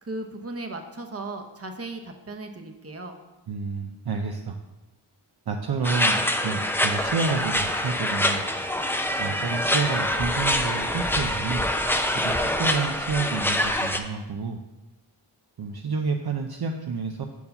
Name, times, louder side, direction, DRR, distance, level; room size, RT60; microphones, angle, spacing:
voice 1, 0.0-3.2, right 2 dB, 30° right, 4 dB, 1.0 m, -36 dB
voice 2, 3.5-4.6 5.5-8.4 9.2-11.6 12.1-14.6 15.6-17.3, right 4 dB, 50° right, 3 dB, 0.6 m, -29 dB
sound 1, 5.8-14.0, left 1 dB, 5° left, 0.6 m, -25 dB
5.4 x 4.7 x 5.4 m, 1.1 s
cardioid pair, 45°, 50 cm